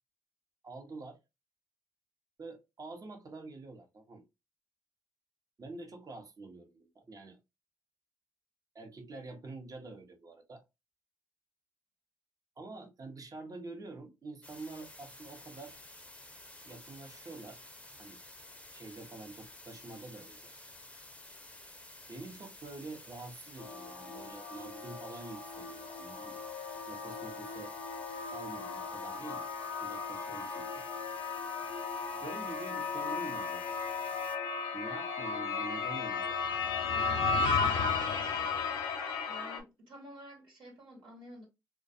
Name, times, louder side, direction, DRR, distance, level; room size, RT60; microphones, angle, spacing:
voice 1, 0.6-1.2 2.4-4.2 5.6-7.4 8.7-10.6 12.6-15.8 16.7-17.6 18.0-18.2 18.7-20.4 22.1-26.4 26.9-27.7 28.3-29.5 29.8-30.8 32.1-33.8 34.7-36.4 36.8-37.2, right 3 dB, 45° right, 0.8 m, -46 dB
sound 1, 14.4-34.4, left 1 dB, 15° left, 0.6 m, -52 dB
sound 2, 23.6-39.6, left 5 dB, 85° left, 0.5 m, -35 dB
voice 2, 39.3-41.5, equal, 75° right, 1.2 m, -50 dB
2.3 x 2.2 x 2.6 m
supercardioid pair, 50°, 9 cm